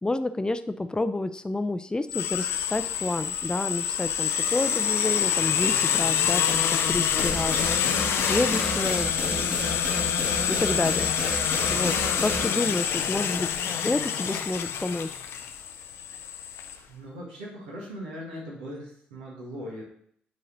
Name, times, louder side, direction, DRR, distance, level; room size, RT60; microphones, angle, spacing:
voice 1, 0.0-6.6 6.9-7.7 8.3-9.7 10.2-13.5 13.8-15.1, left 2 dB, 15° left, 11 dB, 0.6 m, -29 dB
sound 1, 2.1-16.7, left 8 dB, 60° left, 0.6 m, -26 dB
sound 2, 7.2-12.4, right 2 dB, 25° right, 1.3 m, -33 dB
voice 2, 16.9-19.8, equal, 80° right, -4 dB, 1.7 m, -39 dB
9.0 x 4.2 x 3.9 m, 0.67 s
figure-of-eight pair, 40°, 5 cm